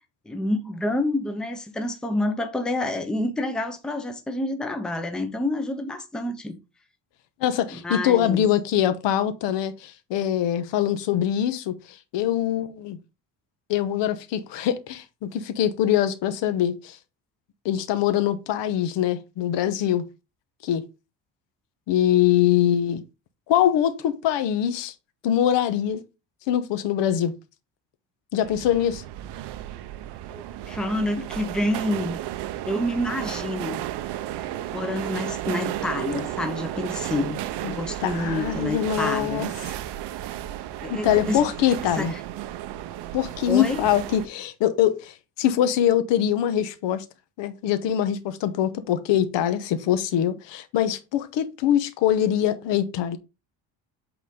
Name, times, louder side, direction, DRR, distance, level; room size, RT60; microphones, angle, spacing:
voice 1, 0.3-6.6 7.7-8.5 30.3-32.2 32.7-33.8 34.7-39.5 40.8-41.4 41.8-42.2 43.5-43.8, left 1 dB, ahead, 0.6 m, -28 dB
voice 2, 7.4-11.8 12.1-13.0 13.7-17.0 17.6-20.0 20.6-20.8 21.9-23.0 23.5-24.9 25.2-26.0 26.5-27.3 28.3-29.0 37.6-39.5 40.9-42.1 43.1-47.0 47.4-53.2, left 10 dB, 75° left, 1.0 m, -23 dB
sound 1, 28.4-44.3, right 13 dB, 65° right, 0.7 m, -33 dB
8.3 x 3.9 x 3.6 m
cardioid pair, 170°, 43 cm